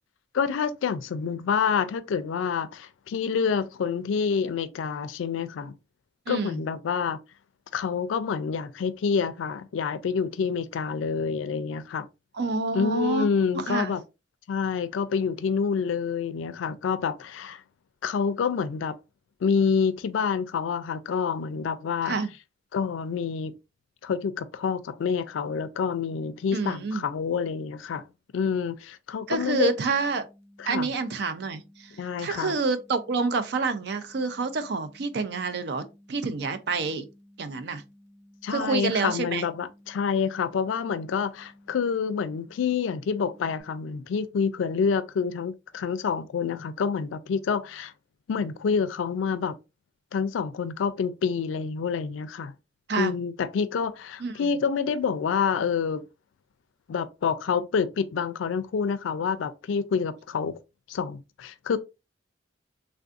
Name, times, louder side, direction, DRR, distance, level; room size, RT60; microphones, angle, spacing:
voice 1, 0.3-5.8 6.3-7.2 7.7-12.1 12.7-14.0 14.5-17.6 18.0-18.9 19.4-22.2 22.7-23.5 24.0-28.1 28.3-29.7 30.6-30.9 32.0-32.6 38.4-47.9 48.3-49.6 50.1-52.5 53.0-56.0 56.9-60.5 60.9-61.8, left 6 dB, 85° left, 0.3 m, -27 dB
voice 2, 6.3-6.6 12.4-13.3 13.5-13.9 22.0-22.3 26.5-27.1 29.3-30.2 30.7-31.9 32.2-37.1 37.4-37.8 38.5-39.4 52.9-53.1 54.2-54.6, right 4 dB, 55° right, 0.4 m, -28 dB
sound 1, 29.3-43.6, equal, 35° right, 0.8 m, -56 dB
3.3 x 2.5 x 2.3 m
head